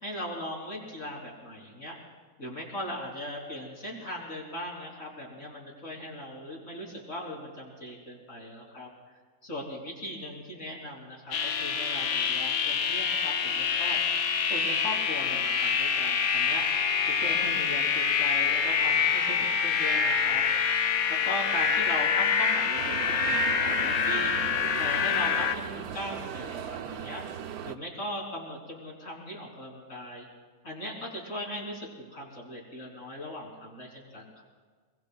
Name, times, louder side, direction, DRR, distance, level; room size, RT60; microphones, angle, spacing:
voice 1, 0.0-2.0 2.4-8.9 9.4-14.0 14.5-16.6 17.2-20.4 21.2-24.4 24.8-27.2 27.6-30.3 30.6-34.4, left 1 dB, 60° left, -3 dB, 3.9 m, -39 dB
sound 1, 11.3-25.5, left 6 dB, 75° left, 1.3 m, -26 dB
sound 2, 22.8-27.7, right 8 dB, 85° right, 1.2 m, -38 dB
25.0 x 23.5 x 2.3 m, 1.5 s
omnidirectional pair, 1.5 m